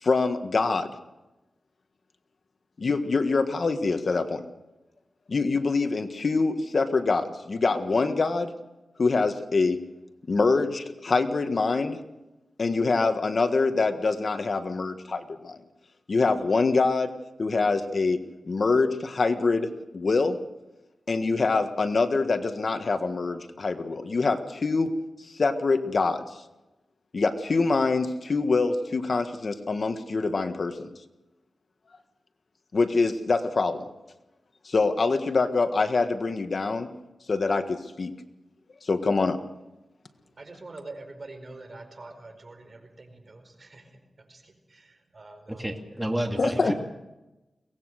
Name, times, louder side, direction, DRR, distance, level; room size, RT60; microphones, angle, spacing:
voice 1, 0.0-0.9 2.8-4.4 5.3-8.5 9.0-9.8 10.3-12.0 12.6-15.6 16.1-17.1 17.4-18.2 18.4-19.7 19.9-20.4 21.1-24.9 25.4-26.2 27.1-30.9 32.7-33.9 34.6-36.9 37.3-38.1 38.8-39.4 46.4-46.7, left 3 dB, 55° left, 8 dB, 1.5 m, -25 dB
voice 2, 40.2-45.7 46.3-46.7, right 2 dB, 45° right, 6 dB, 4.8 m, -44 dB
voice 3, 45.5-46.7, right 1 dB, 10° right, 3 dB, 2.4 m, -30 dB
23.0 x 19.0 x 6.5 m, 1.0 s
wide cardioid pair, 75°, 0 cm